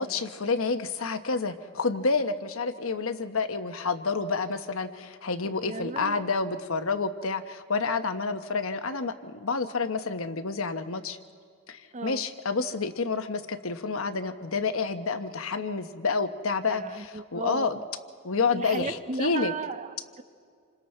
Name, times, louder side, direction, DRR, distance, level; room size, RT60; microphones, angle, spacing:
voice 1, 0.0-11.2 11.7-17.8 18.2-19.5, left 4 dB, 65° left, 9 dB, 1.1 m, -29 dB
voice 2, 5.6-6.3 11.9-12.2 16.7-17.8 18.5-20.2, right 3 dB, 35° right, 11 dB, 0.8 m, -35 dB
28.0 x 26.0 x 4.4 m, 2.1 s
head